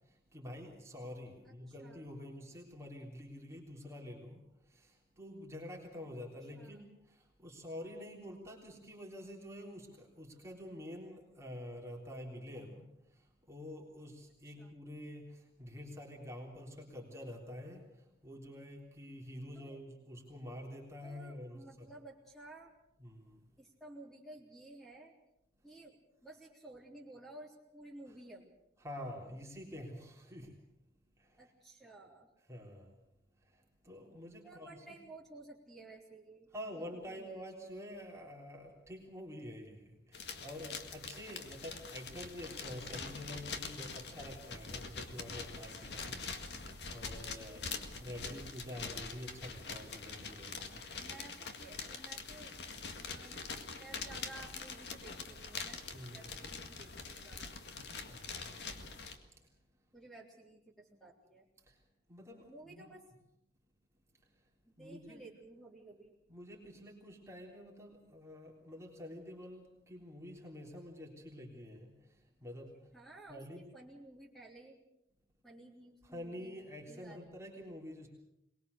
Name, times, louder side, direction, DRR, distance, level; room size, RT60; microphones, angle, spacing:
voice 1, 0.3-4.4 4.7-12.8 13.5-17.9 18.2-21.9 23.0-23.4 28.8-30.6 31.2-31.5 32.5-32.9 33.5-34.8 36.5-46.2 46.9-50.8 55.9-56.3 58.1-58.7 61.7-61.8 62.1-62.9 64.8-65.3 66.3-72.0 72.4-72.8 73.3-73.7 76.0-78.1, left 1 dB, 15° right, -2 dB, 3.5 m, -48 dB
voice 2, 1.7-2.0 6.5-6.8 14.5-14.7 19.5-19.8 21.0-22.7 23.6-25.2 25.6-26.0 26.2-28.5 31.4-32.3 34.4-36.5 36.7-37.5 41.3-41.8 46.1-46.8 50.4-52.6 53.0-53.4 53.8-57.5 59.9-61.5 62.5-63.0 64.7-66.2 72.9-74.8 75.4-76.6 76.9-77.4, right 2 dB, ahead, -2 dB, 3.7 m, -54 dB
sound 1, 40.1-59.2, left 4 dB, 75° left, 1.9 m, -44 dB
22.5 x 20.5 x 6.7 m, 0.87 s
head